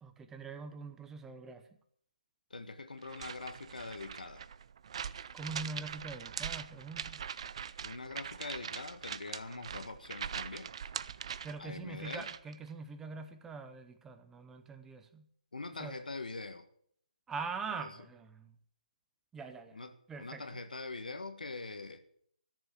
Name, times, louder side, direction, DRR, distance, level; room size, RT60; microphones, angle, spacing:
voice 1, 0.0-1.6 5.3-7.2 11.4-15.3 15.8-16.0 17.3-18.5 19.3-19.8 20.1-20.4, right 4 dB, 10° right, 0.7 m, -43 dB
voice 2, 2.5-4.5 7.8-10.7 11.6-12.3 15.5-16.7 17.8-18.0 19.7-22.0, left 3 dB, 80° left, 1.5 m, -43 dB
sound 1, 3.0-12.5, right 8 dB, 45° right, 0.5 m, -42 dB
13.5 x 7.1 x 8.2 m
figure-of-eight pair, 150°, 4 cm